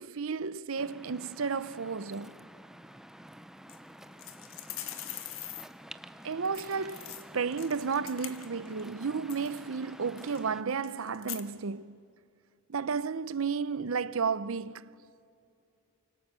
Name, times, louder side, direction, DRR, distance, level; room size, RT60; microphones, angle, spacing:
voice 1, 0.0-2.4 6.2-12.0 12.7-14.9, right 5 dB, 70° right, 0.6 m, -33 dB
Waves surf, 0.8-10.6, equal, ahead, 0.6 m, -50 dB
sound 1, 3.7-3.8 4.2-5.7 6.4-8.8 9.1-9.6 10.2-10.4 10.8-11.4, left 12 dB, 70° left, 1.5 m, -43 dB
sound 2, 6.5-8.1, right 7 dB, 40° right, 1.5 m, -59 dB
29.0 x 25.5 x 6.8 m
head